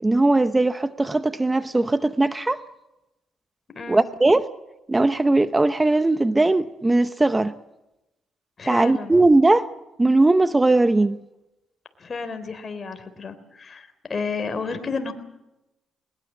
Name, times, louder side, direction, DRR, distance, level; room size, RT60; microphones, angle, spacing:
voice 1, 0.0-2.6 3.9-4.4 4.9-7.5 8.7-9.7 10.0-11.2, right 2 dB, 15° right, 12 dB, 0.8 m, -19 dB
voice 2, 3.7-4.0 8.6-9.2 12.0-15.1, left 4 dB, 35° left, 9 dB, 3.6 m, -31 dB
21.0 x 21.0 x 7.6 m, 0.94 s
cardioid pair, 90°, 0 cm